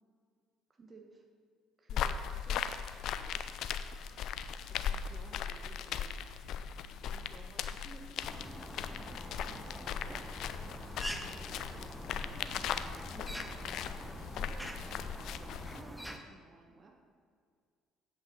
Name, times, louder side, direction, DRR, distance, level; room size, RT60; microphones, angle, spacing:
voice 1, 0.8-1.2 1.8-2.7 3.1-3.4 4.7-6.2 7.0-9.1 9.4-10.2 10.8-16.9, right 3 dB, 35° right, 1 dB, 1.3 m, -56 dB
sound 1, 1.9-15.8, left 8 dB, 60° left, 0.4 m, -38 dB
sound 2, 8.2-16.2, equal, ahead, 0.9 m, -45 dB
8.1 x 5.7 x 5.5 m, 2.1 s
hypercardioid pair, 55°, 0 cm